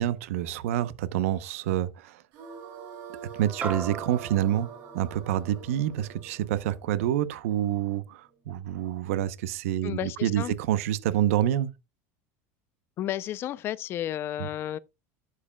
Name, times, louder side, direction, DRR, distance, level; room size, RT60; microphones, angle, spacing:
voice 1, 0.0-2.2 3.4-4.7 4.9-11.7 14.4-14.5, right 11 dB, 85° right, 0.8 m, -27 dB
sound 1, 2.3-7.5, right 6 dB, 55° right, 5.2 m, -44 dB
sound 2, 3.6-8.2, right 4 dB, 25° right, 1.6 m, -41 dB
voice 2, 9.8-10.5 13.0-14.8, left 12 dB, 30° left, 0.5 m, -32 dB
11.0 x 7.4 x 2.2 m
supercardioid pair, 155°, 7 cm